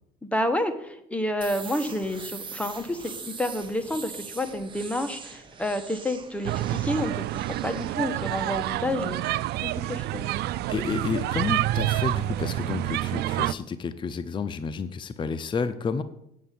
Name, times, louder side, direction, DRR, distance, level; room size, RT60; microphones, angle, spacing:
voice 1, 0.2-7.2 7.6-10.3, left 1 dB, 5° left, 8 dB, 1.3 m, -29 dB
sound 1, 1.4-13.0, right 5 dB, 30° right, 1.4 m, -44 dB
sound 2, 6.4-13.5, right 15 dB, 75° right, 0.4 m, -28 dB
voice 2, 10.7-16.0, left 5 dB, 30° left, 11 dB, 0.6 m, -30 dB
8.4 x 7.9 x 7.6 m, 0.79 s
cardioid pair, 110°, 17 cm